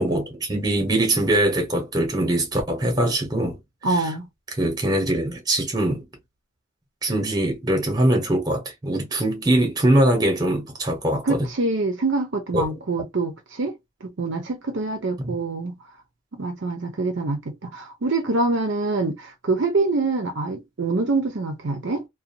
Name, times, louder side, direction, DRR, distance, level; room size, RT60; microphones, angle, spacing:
voice 1, 0.0-3.6 3.9-4.0 4.6-6.0 7.0-11.4 12.5-12.6 15.2-15.4, right 1 dB, 20° right, 0.9 m, -22 dB
voice 2, 3.8-4.3 11.2-13.7 14.0-15.8 16.4-22.1, right 3 dB, 55° right, 0.6 m, -25 dB
2.6 x 2.2 x 2.7 m
head